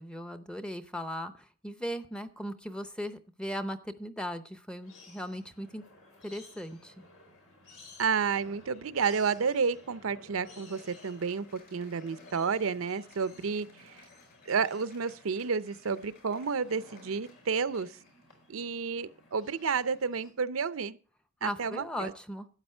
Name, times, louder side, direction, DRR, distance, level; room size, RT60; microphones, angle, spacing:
voice 1, 0.0-5.8 6.2-6.9 21.4-22.5, equal, 5° left, 0.6 m, -38 dB
sound 1, 4.8-20.3, left 2 dB, 85° left, 4.2 m, -55 dB
voice 2, 8.0-11.4 11.7-13.9 14.5-17.9 18.5-21.0 21.4-22.1, right 5 dB, 80° right, 0.6 m, -31 dB
Cheering / Applause, 10.7-18.2, left 3 dB, 50° left, 7.2 m, -60 dB
12.5 x 9.0 x 4.4 m
head